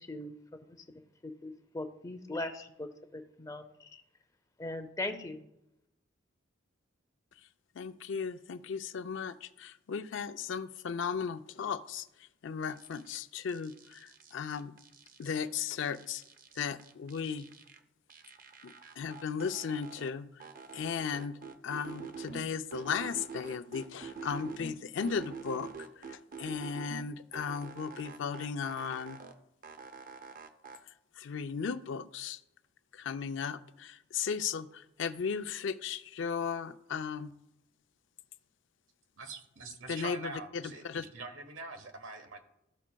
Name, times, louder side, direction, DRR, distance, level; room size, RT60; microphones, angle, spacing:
voice 1, 0.0-4.0 4.6-5.5, left 2 dB, 15° left, 8 dB, 0.5 m, -40 dB
voice 2, 7.8-14.7 15.2-16.2 16.6-17.5 18.6-20.5 20.7-25.7 26.0-29.2 31.2-32.4 32.9-37.3 39.9-41.0, left 6 dB, 65° left, 12 dB, 0.4 m, -36 dB
sound 1, 12.6-13.2 13.5-15.5 15.8-17.8 18.1-20.1 20.4-22.4 22.7-24.7 25.0-27.0 27.3-29.3 29.6-30.8, right 5 dB, 45° right, 0.6 m, -46 dB
voice 3, 39.2-42.4, right 3 dB, 80° right, 6 dB, 1.1 m, -44 dB
14.0 x 6.0 x 2.3 m, 0.87 s
head